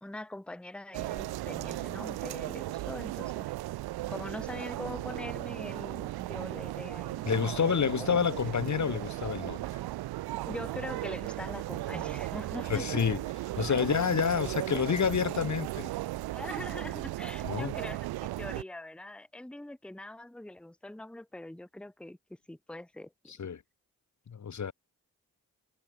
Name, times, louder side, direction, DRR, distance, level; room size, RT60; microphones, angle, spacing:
voice 1, 0.0-3.5 4.1-7.2 7.7-7.8 10.4-12.9 13.7-14.1 16.3-22.2 22.5-23.5, left 1 dB, 5° left, 1.0 m, -43 dB
sound 1, 0.9-18.6, right 17 dB, 90° right, 0.5 m, -36 dB
voice 2, 7.3-9.6 12.7-13.2 13.6-15.9 17.5-17.7 23.3-23.6 24.3-24.7, left 7 dB, 50° left, 1.2 m, -28 dB
supercardioid pair, 45°, 36 cm